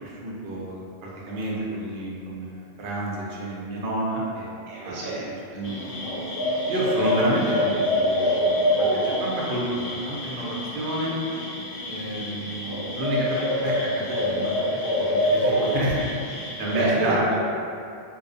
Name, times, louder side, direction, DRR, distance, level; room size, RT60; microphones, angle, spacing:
voice 1, 0.0-4.5 4.8-5.0 5.5-5.8 6.7-11.2 11.9-16.1 16.6-17.3, right 1 dB, 60° right, -5 dB, 0.6 m, -29 dB
voice 2, 4.7-5.6 15.4-15.6 16.7-17.4, right 2 dB, 90° right, -6 dB, 0.9 m, -28 dB
sound 1, 5.6-16.8, left 1 dB, 70° left, 1.0 m, -26 dB
2.6 x 2.0 x 2.5 m, 2.4 s
omnidirectional pair, 1.1 m